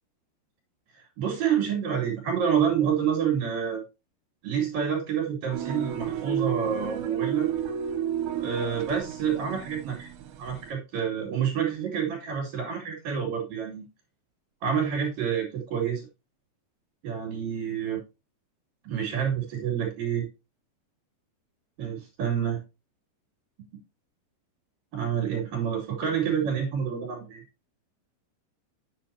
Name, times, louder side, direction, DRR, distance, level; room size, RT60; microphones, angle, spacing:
voice 1, 1.2-3.8 4.4-7.5 8.4-10.1 10.4-13.8 14.6-16.1 17.0-18.0 18.9-20.3 21.8-22.6 24.9-27.4, right 8 dB, 55° right, -4 dB, 3.9 m, -28 dB
sound 1, 5.5-10.7, right 9 dB, 75° right, 3.2 m, -32 dB
8.5 x 8.4 x 2.8 m, 0.26 s
omnidirectional pair, 5.4 m